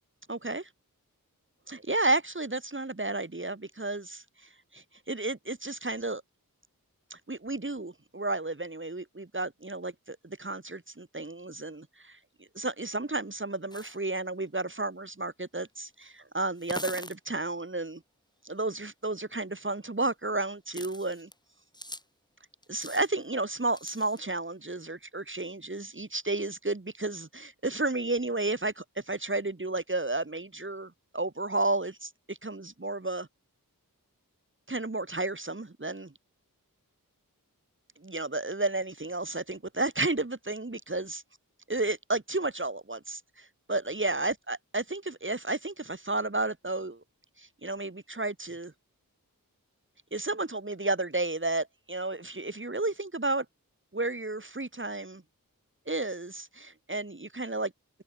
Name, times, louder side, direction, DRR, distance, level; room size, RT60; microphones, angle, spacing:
voice 1, 0.3-0.7 1.7-4.2 4.7-6.2 7.1-18.0 18.4-21.3 22.7-33.3 34.7-36.1 38.0-41.2 41.7-47.0 47.4-48.7 50.1-53.5 53.9-55.2 55.9-57.7, right 2 dB, 35° right, 2.3 m, -32 dB
sound 1, 13.7-14.0 15.6-15.7 16.5-17.2 19.3-19.4 20.7-21.3 21.7-22.0 22.6-23.1 23.7-24.2, left 1 dB, 10° left, 5.4 m, -42 dB
open air
wide cardioid pair, 50°, 34 cm